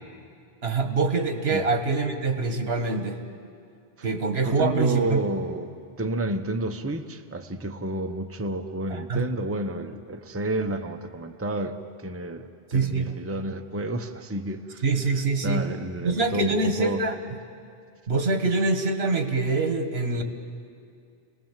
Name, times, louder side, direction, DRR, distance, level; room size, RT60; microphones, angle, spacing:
voice 1, 0.6-3.2 4.0-5.2 8.9-9.3 12.7-13.1 14.8-15.7 16.0-17.2 18.1-20.2, right 3 dB, 75° right, 6 dB, 1.8 m, -24 dB
voice 2, 4.4-5.7 6.0-14.8 15.4-17.0, right 1 dB, 15° right, 6 dB, 0.8 m, -30 dB
29.0 x 19.0 x 7.4 m, 2.4 s
omnidirectional pair, 1.1 m